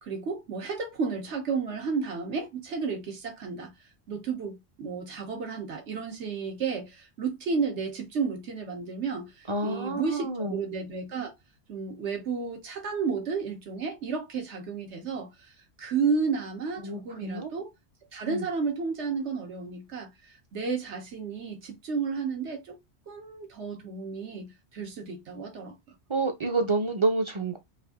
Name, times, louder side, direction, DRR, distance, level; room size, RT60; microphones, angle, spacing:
voice 1, 0.0-3.7 4.1-11.3 11.7-15.5 15.8-17.7 18.1-20.1 20.5-22.8 23.1-25.8, right 5 dB, 80° right, 1.4 m, -32 dB
voice 2, 9.5-10.6 16.8-17.5 18.3-18.5 26.1-27.6, right 3 dB, 35° right, 0.5 m, -28 dB
3.4 x 2.6 x 3.5 m
omnidirectional pair, 1.2 m